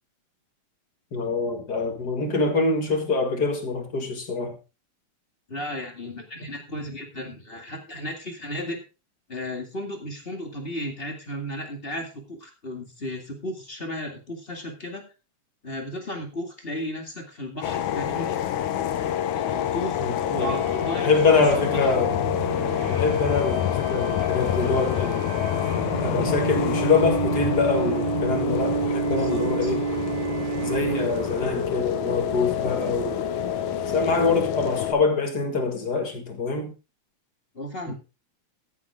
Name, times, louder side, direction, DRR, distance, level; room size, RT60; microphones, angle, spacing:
voice 1, 1.1-4.6 20.0-20.6 20.9-22.2 22.9-25.3 26.0-29.9 30.6-33.2 33.9-36.7 37.9-38.0, left 4 dB, 35° left, 2.2 m, -25 dB
voice 2, 5.5-8.8 9.3-15.1 15.6-18.4 19.3-21.9 29.1-29.7 37.5-37.9, left 1 dB, 20° left, 2.1 m, -34 dB
sound 1, 17.6-34.9, left 10 dB, 85° left, 2.4 m, -27 dB
sound 2, 20.5-31.5, right 9 dB, 85° right, 2.3 m, -31 dB
sound 3, 24.0-34.0, equal, 10° right, 4.2 m, -41 dB
14.0 x 9.5 x 3.6 m
omnidirectional pair, 3.4 m